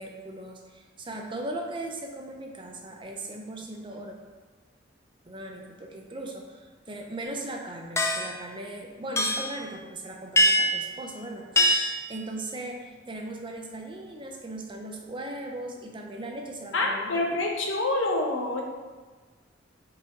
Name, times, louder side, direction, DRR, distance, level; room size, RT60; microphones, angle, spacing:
voice 1, 0.0-4.2 5.2-17.3, right 1 dB, 25° right, 2 dB, 0.7 m, -38 dB
sound 1, 8.0-8.3 9.2-9.6 10.4-10.8 11.6-12.0, equal, 15° left, 0.4 m, -23 dB
voice 2, 16.7-18.6, left 2 dB, 80° left, 1 dB, 1.0 m, -26 dB
5.4 x 4.9 x 3.9 m, 1.3 s
head